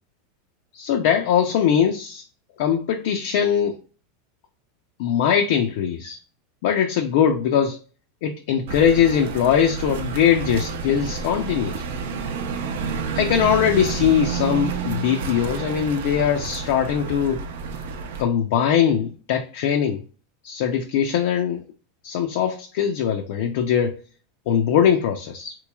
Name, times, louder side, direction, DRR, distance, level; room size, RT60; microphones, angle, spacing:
voice 1, 0.7-2.2 2.6-3.8 5.0-6.2 6.6-7.8 8.2-11.8 13.1-17.4 18.2-20.0 20.4-21.6 22.0-24.0 24.5-25.6, left 8 dB, 55° left, 0.4 m, -21 dB
sound 1, 8.7-18.2, right 5 dB, 70° right, 0.6 m, -30 dB
4.0 x 3.0 x 2.2 m
supercardioid pair, 170°, 0 cm